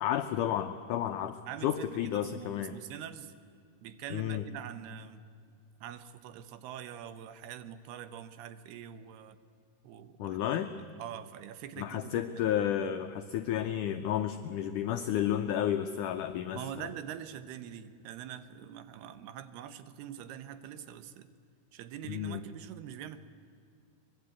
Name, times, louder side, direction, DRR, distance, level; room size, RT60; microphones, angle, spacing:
voice 1, 0.0-1.4 1.6-2.8 4.1-4.4 10.2-10.7 11.8-16.9 22.1-22.4, left 10 dB, 85° left, 7 dB, 1.8 m, -32 dB
voice 2, 1.5-3.3 3.8-5.2 5.8-9.4 9.8-13.0 16.5-21.3 21.7-23.2, right 9 dB, 80° right, 11 dB, 3.0 m, -44 dB
24.0 x 21.5 x 8.4 m, 2.4 s
omnidirectional pair, 4.6 m